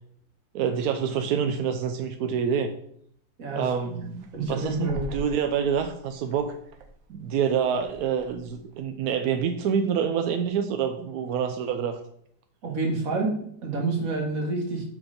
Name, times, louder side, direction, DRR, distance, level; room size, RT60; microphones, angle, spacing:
voice 1, 0.5-2.7 3.6-6.6 7.1-12.0, right 7 dB, 70° right, 6 dB, 0.9 m, -27 dB
voice 2, 3.4-3.7 4.3-5.1 12.6-14.8, right 3 dB, 50° right, 1 dB, 1.8 m, -28 dB
sound 1, 3.8-9.0, right 1 dB, 90° right, 1.6 m, -44 dB
6.1 x 4.8 x 5.1 m, 0.67 s
omnidirectional pair, 2.0 m